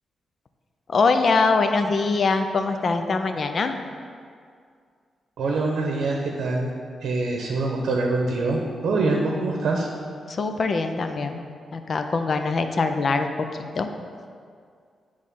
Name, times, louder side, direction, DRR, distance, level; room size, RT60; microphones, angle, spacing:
voice 1, 0.9-3.8 10.3-11.4 11.7-13.3 13.7-13.9, left 4 dB, 45° left, 7 dB, 0.4 m, -23 dB
voice 2, 5.4-6.7 7.0-9.9, right 3 dB, 85° right, 0 dB, 0.7 m, -24 dB
8.4 x 3.2 x 5.4 m, 2.2 s
wide cardioid pair, 130°, 0 cm